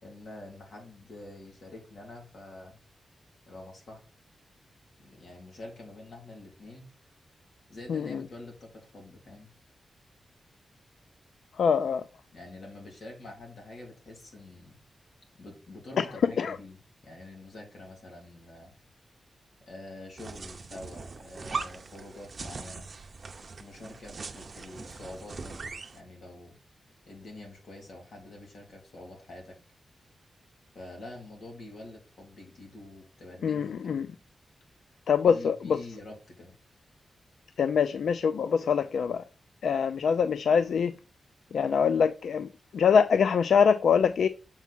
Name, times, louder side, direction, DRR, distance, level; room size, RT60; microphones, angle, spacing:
voice 1, 0.0-2.8 3.5-4.0 5.0-6.8 7.7-9.5 12.3-14.7 15.4-18.7 19.7-22.9 23.6-26.5 27.1-29.5 30.7-34.1 35.2-36.5, left 2 dB, 65° left, 2.8 m, -46 dB
voice 2, 7.9-8.2 11.6-12.0 16.4-16.6 33.4-34.1 35.1-35.8 37.6-39.2 39.6-40.9 41.5-42.5 42.7-44.3, left 6 dB, 80° left, 0.3 m, -24 dB
sound 1, 20.2-26.0, right 4 dB, 40° right, 0.7 m, -40 dB
7.2 x 4.5 x 4.2 m
wide cardioid pair, 150°, 0 cm